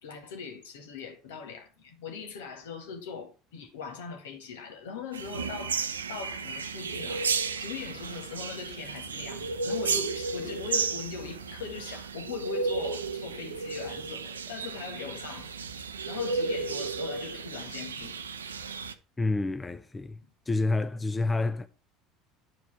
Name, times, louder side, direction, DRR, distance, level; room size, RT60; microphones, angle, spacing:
voice 1, 0.0-5.8 6.1-7.3 7.6-15.5 16.0-18.2, left 6 dB, 70° left, 1.8 m, -40 dB
sound 1, 5.1-18.9, right 4 dB, 80° right, 0.6 m, -33 dB
voice 2, 19.2-20.2 20.5-21.7, left 3 dB, 15° left, 0.6 m, -28 dB
9.4 x 4.8 x 5.7 m
figure-of-eight pair, 65°, 0 cm